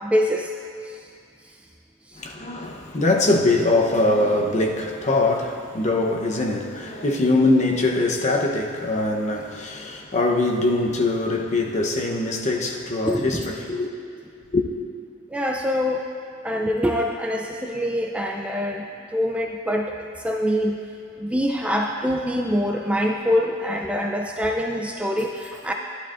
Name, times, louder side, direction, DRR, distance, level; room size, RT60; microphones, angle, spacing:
voice 1, 0.0-0.5 0.9-1.0 2.1-2.2 13.0-13.4 15.3-16.0 16.4-20.8 21.2-25.7, equal, 5° right, 1 dB, 0.4 m, -24 dB
voice 2, 2.2-13.9 14.5-14.6, left 2 dB, 35° left, 1 dB, 0.8 m, -22 dB
14.0 x 11.5 x 2.5 m, 2.3 s
head